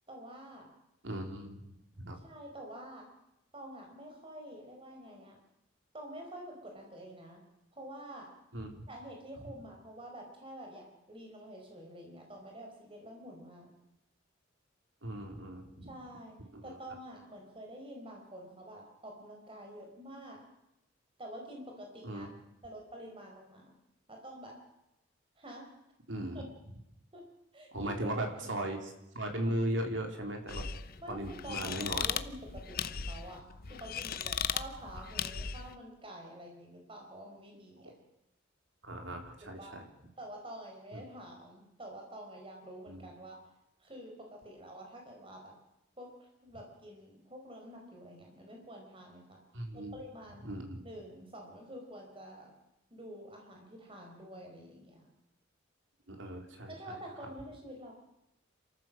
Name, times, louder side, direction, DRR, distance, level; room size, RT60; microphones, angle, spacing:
voice 1, 0.1-0.7 2.1-3.1 3.5-5.4 5.9-7.4 7.7-8.3 8.9-13.7 15.8-16.4 16.6-20.4 21.2-22.3 22.6-23.7 24.1-24.6 25.4-25.7 26.3-26.4 27.1-27.2 27.5-28.5 31.0-37.9 39.4-39.8 40.2-43.4 43.8-45.6 46.0-49.4 49.7-50.5 50.8-52.5 52.9-55.1 56.7-57.9, right 1 dB, 25° right, 1 dB, 4.7 m, -48 dB
voice 2, 1.0-2.2 8.5-8.9 15.0-15.9 16.5-16.8 22.0-22.3 26.1-26.4 27.7-30.7 31.1-32.0 34.9-35.1 38.8-39.8 40.9-41.0 42.9-43.0 49.5-50.0 50.4-50.9 56.1-57.0 57.2-57.3, right 1 dB, 65° right, 3 dB, 3.7 m, -38 dB
sound 1, 30.5-35.7, left 7 dB, 50° left, 0.8 m, -37 dB
28.0 x 14.0 x 7.6 m, 0.86 s
head